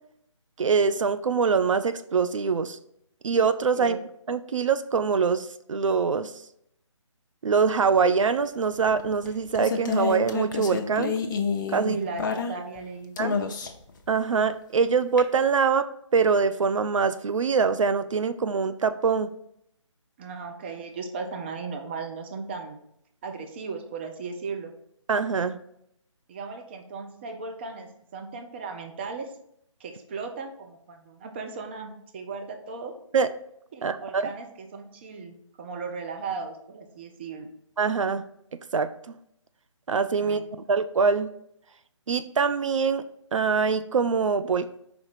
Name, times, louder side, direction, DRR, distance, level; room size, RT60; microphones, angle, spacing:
voice 1, 0.6-2.8 3.2-4.0 4.3-6.3 7.4-11.1 11.7-12.0 13.2-13.4 14.1-15.9 16.1-19.3 25.1-25.6 33.1-33.3 33.8-34.3 37.8-38.3 38.7-38.9 39.9-40.4 40.7-41.3 42.1-43.0 43.3-44.8, right 5 dB, 75° right, 11 dB, 0.5 m, -24 dB
sound 1, 8.9-12.8 13.2-13.9 15.2-15.3, left 5 dB, 40° left, 0.6 m, -29 dB
voice 2, 11.9-13.2 20.2-22.8 23.2-24.7 26.3-29.3 29.8-32.9 33.7-37.5 40.2-40.6, right 4 dB, 20° right, 4 dB, 0.5 m, -36 dB
5.1 x 3.5 x 5.7 m, 0.74 s
figure-of-eight pair, 160°, 16 cm